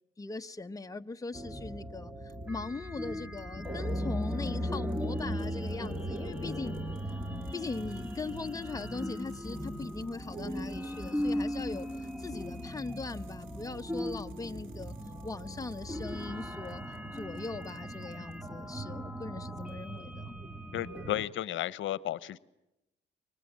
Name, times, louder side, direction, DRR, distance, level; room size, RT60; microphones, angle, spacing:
voice 1, 0.2-6.8 7.5-14.9 15.2-16.8 17.1-20.4, left 3 dB, 15° left, 1.0 m, -40 dB
sound 1, 1.3-21.3, equal, 5° right, 2.0 m, -37 dB
sound 2, 2.3-2.7 3.4-18.8 19.2-20.0, right 7 dB, 90° right, 4.8 m, -65 dB
voice 2, 20.7-22.4, left 13 dB, 75° left, 0.9 m, -33 dB
29.0 x 24.0 x 7.4 m
cardioid pair, 90°, 20 cm